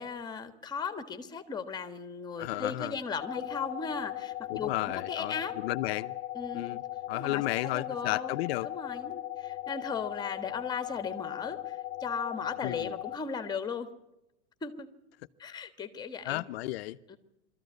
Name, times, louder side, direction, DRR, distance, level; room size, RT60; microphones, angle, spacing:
voice 1, 0.0-5.6 6.3-6.8 7.1-8.3 8.6-13.9 14.6-14.9 15.4-16.4 17.1-17.2, left 5 dB, 10° left, 1.5 m, -37 dB
voice 2, 2.4-2.9 4.5-6.1 6.5-6.8 7.1-8.7 12.6-12.9 16.2-17.2, left 17 dB, 60° left, 0.8 m, -33 dB
sound 1, 3.2-13.2, left 14 dB, 30° left, 0.9 m, -38 dB
23.5 x 14.5 x 9.5 m
supercardioid pair, 160°, 34 cm